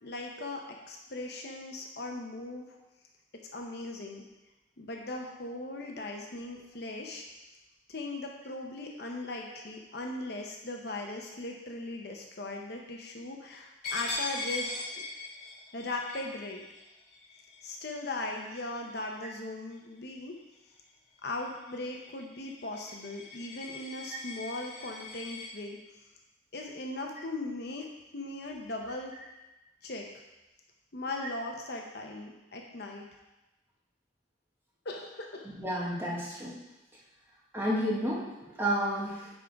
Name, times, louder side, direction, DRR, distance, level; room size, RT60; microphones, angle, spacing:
voice 1, 0.0-2.7 3.5-4.3 4.8-7.2 7.9-15.1 15.7-16.6 17.6-20.3 21.2-25.8 26.5-27.9 28.1-29.1 29.8-30.1 30.9-33.1 34.8-35.5, left 2 dB, 55° left, 1 dB, 0.8 m, -38 dB
Coin (dropping), 13.8-19.2 19.7-20.0 20.4-25.5, left 3 dB, 35° left, 2.8 m, -41 dB
voice 2, 35.5-36.5 37.5-38.3 38.6-39.2, equal, 10° right, -5 dB, 1.4 m, -30 dB
9.1 x 3.8 x 4.6 m, 1.0 s
head